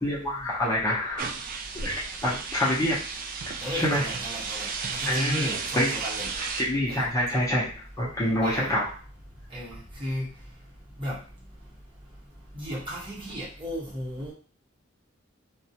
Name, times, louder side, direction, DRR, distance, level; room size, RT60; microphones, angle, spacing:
voice 1, 0.0-1.3 1.8-3.0 3.7-4.0 5.1-5.9 6.4-8.8, left 1 dB, 15° left, -6 dB, 0.5 m, -26 dB
sound 1, 1.2-6.6, right 5 dB, 45° right, 0.3 m, -34 dB
voice 2, 3.6-6.3 6.9-7.1 8.4-8.7 9.5-10.3 11.0-11.2 12.5-14.3, equal, 25° right, -5 dB, 0.9 m, -34 dB
2.3 x 2.1 x 2.7 m, 0.39 s
head